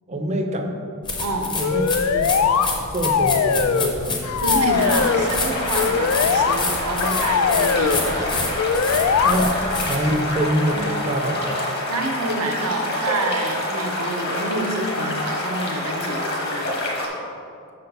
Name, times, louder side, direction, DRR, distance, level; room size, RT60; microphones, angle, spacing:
voice 1, 0.1-0.8 1.5-2.3 2.9-4.2 9.2-11.5, right 1 dB, 30° right, 4 dB, 0.5 m, -25 dB
sound 1, 1.0-10.2, left 3 dB, 20° left, 0.7 m, -28 dB
voice 2, 1.2-1.5 4.4-8.3 11.9-16.8, right 2 dB, 90° right, 2 dB, 0.8 m, -28 dB
sound 2, 1.6-2.7 3.0-4.0 4.2-5.3 5.7-6.6 7.0-8.0 8.6-9.3, left 6 dB, 70° left, 0.3 m, -21 dB
sound 3, 4.7-17.1, left 1 dB, 45° left, 1.2 m, -27 dB
6.0 x 4.4 x 5.3 m, 2.5 s
head